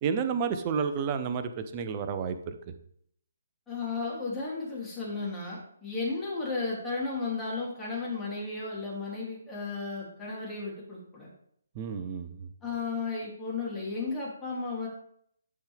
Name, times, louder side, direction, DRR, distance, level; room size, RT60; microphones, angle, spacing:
voice 1, 0.0-2.6 11.7-12.5, right 6 dB, 25° right, 9 dB, 0.7 m, -31 dB
voice 2, 3.7-11.3 12.6-14.9, left 3 dB, 10° left, -7 dB, 3.0 m, -34 dB
11.5 x 4.4 x 3.5 m, 0.68 s
figure-of-eight pair, 140°, 0 cm